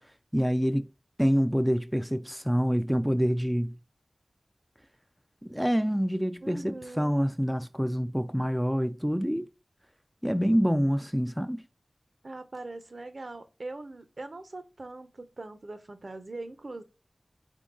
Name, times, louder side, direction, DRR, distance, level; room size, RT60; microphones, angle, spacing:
voice 1, 0.3-0.9 1.2-3.8 5.4-9.5 10.2-11.6, equal, ahead, 0.3 m, -26 dB
voice 2, 6.4-7.2 12.2-16.8, right 2 dB, 60° right, 0.7 m, -41 dB
3.8 x 3.6 x 3.7 m
wide cardioid pair, 60°, 0 cm